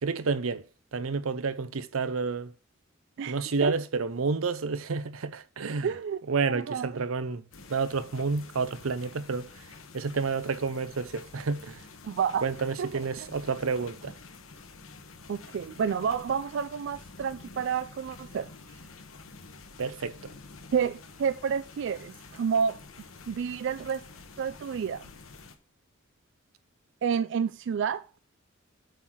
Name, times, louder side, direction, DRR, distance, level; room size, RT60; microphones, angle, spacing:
voice 1, 0.0-0.6 0.9-2.5 3.3-5.9 6.3-7.4 7.7-9.5 9.9-11.8 12.4-14.2 19.8-20.3, right 4 dB, 90° right, 0.7 m, -30 dB
voice 2, 3.2-3.7 5.8-6.2 6.5-7.0 12.0-12.5 12.8-13.3 15.3-18.5 20.7-22.8 23.3-24.1 24.4-25.1 27.0-28.2, right 7 dB, 60° right, 0.3 m, -30 dB
sound 1, 7.5-25.5, left 3 dB, 80° left, 1.2 m, -49 dB
8.0 x 4.0 x 6.1 m
head